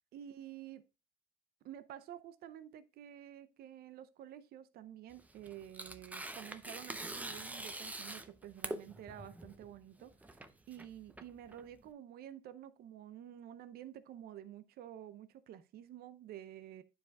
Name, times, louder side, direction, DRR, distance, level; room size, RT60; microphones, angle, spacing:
voice 1, 0.1-0.8 1.6-16.8, right 11 dB, 65° right, 0.6 m, -50 dB
Tearing, 5.1-11.9, right 2 dB, 10° right, 0.6 m, -45 dB
11.0 x 4.8 x 2.2 m
cardioid pair, 110°, 17 cm